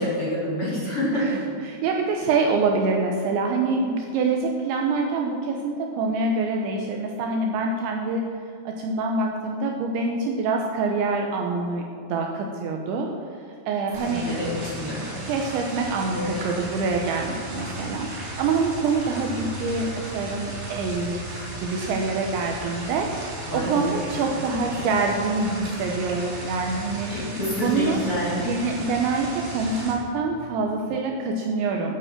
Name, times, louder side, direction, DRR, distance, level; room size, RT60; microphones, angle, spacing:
voice 1, 0.0-1.3 14.0-15.1 16.1-16.4 23.5-24.0 24.3-24.4 24.7-24.9 27.1-28.4, left 1 dB, 30° left, -7 dB, 3.4 m, -28 dB
voice 2, 1.1-8.3 8.7-13.1 13.7-14.3 15.2-27.1 27.6-28.0 28.5-32.0, right 3 dB, 75° right, 1 dB, 2.9 m, -26 dB
sound 1, 13.9-29.9, right 2 dB, 50° right, 5.2 m, -35 dB
11.0 x 9.7 x 7.2 m, 2.5 s
omnidirectional pair, 6.0 m